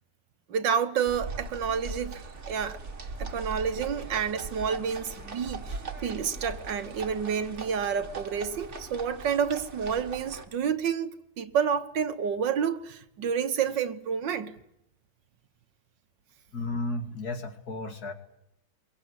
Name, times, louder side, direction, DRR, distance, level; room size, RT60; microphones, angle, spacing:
voice 1, 0.5-2.8 3.2-14.6, right 7 dB, 80° right, 1.9 m, -29 dB
sound 1, 1.1-10.4, right 3 dB, 40° right, 1.9 m, -40 dB
voice 2, 16.5-18.1, left 2 dB, 55° left, 2.5 m, -33 dB
23.5 x 22.5 x 8.2 m
omnidirectional pair, 1.9 m